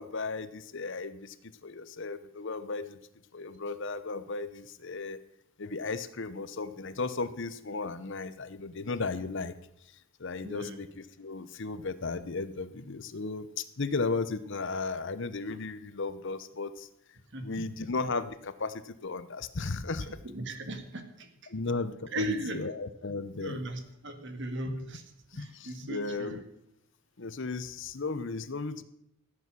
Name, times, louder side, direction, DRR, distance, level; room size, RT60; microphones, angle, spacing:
voice 1, 0.0-3.0 3.3-5.2 5.6-9.5 10.2-16.9 17.4-20.2 21.5-23.6 24.7-24.8 25.3-26.4 27.2-28.8, left 3 dB, 55° left, 13 dB, 0.8 m, -35 dB
voice 2, 10.4-10.8 17.3-17.9 20.2-21.3 22.1-22.7 23.4-25.0 25.3-26.4, right 1 dB, 55° right, 7 dB, 1.8 m, -37 dB
15.5 x 8.4 x 6.3 m, 0.77 s
head